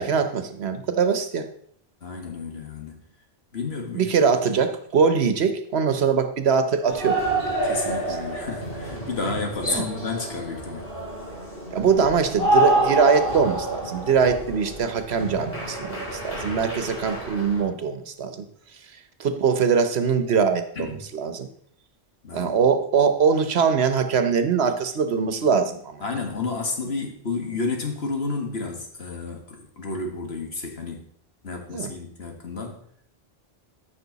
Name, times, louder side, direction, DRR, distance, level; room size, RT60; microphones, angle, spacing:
voice 1, 0.0-1.5 4.0-7.2 9.7-9.9 11.7-18.5 19.2-21.5 22.3-26.0 31.5-31.9, right 6 dB, 80° right, 9 dB, 1.2 m, -22 dB
voice 2, 2.0-3.0 3.5-4.2 7.6-10.9 20.8-21.0 22.2-22.5 26.0-31.0 31.4-32.8, left 3 dB, 80° left, 2 dB, 2.0 m, -31 dB
sound 1, 6.8-17.6, right 1 dB, 60° left, 3.7 m, -28 dB
14.0 x 6.0 x 4.1 m, 0.64 s
omnidirectional pair, 1.1 m